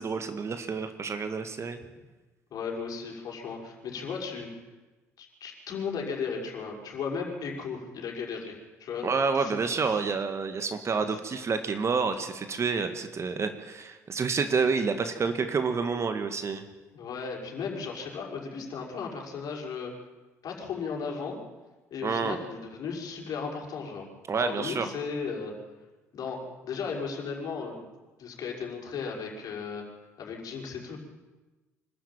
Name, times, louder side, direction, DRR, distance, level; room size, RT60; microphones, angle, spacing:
voice 1, 0.0-1.8 9.0-16.6 22.0-22.4 24.3-24.9, right 5 dB, 35° right, 8 dB, 2.0 m, -29 dB
voice 2, 2.5-4.6 5.2-9.1 9.4-9.6 9.9-10.0 11.1-11.2 16.9-19.9 20.4-21.4 21.9-24.1 24.4-25.6 26.1-27.9 28.2-29.8 30.2-31.0, left 5 dB, 50° left, 0 dB, 5.9 m, -35 dB
25.5 x 13.0 x 9.1 m, 1.2 s
figure-of-eight pair, 55°, 8 cm